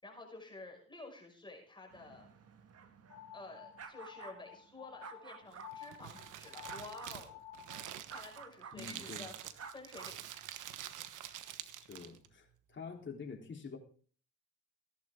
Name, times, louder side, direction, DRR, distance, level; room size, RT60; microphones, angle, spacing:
voice 1, 0.0-2.3 3.3-7.4 8.1-9.3 9.7-10.2, left 2 dB, 15° left, 0 dB, 5.7 m, -51 dB
sound 1, 1.9-5.7 6.7-7.2 8.1-8.8 9.5-10.2, right 6 dB, 55° right, 1.8 m, -51 dB
sound 2, 3.1-8.0, left 11 dB, 85° left, 2.2 m, -52 dB
Crumpling crinkling, 5.5-12.3, right 11 dB, 80° right, 1.3 m, -47 dB
voice 2, 8.7-9.3 11.8-13.8, left 5 dB, 40° left, 1 dB, 3.7 m, -47 dB
17.0 x 11.5 x 3.7 m, 0.43 s
cardioid pair, 90°, 30 cm